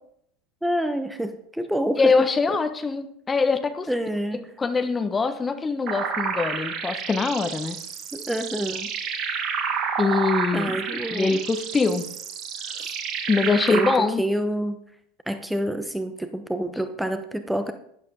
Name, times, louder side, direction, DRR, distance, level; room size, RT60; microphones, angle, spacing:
voice 1, 0.6-2.1 2.5-2.6 3.9-4.5 8.1-8.9 10.5-11.4 12.6-13.0 13.4-14.8 15.3-17.7, right 1 dB, 5° right, 8 dB, 0.9 m, -28 dB
voice 2, 2.0-3.9 4.6-7.8 10.0-10.8 11.1-12.0 13.3-14.2, left 4 dB, 20° left, 9 dB, 1.1 m, -23 dB
sound 1, 5.9-14.0, right 6 dB, 45° right, 1.8 m, -30 dB
12.0 x 11.5 x 3.7 m, 0.69 s
hypercardioid pair, 80°, 0 cm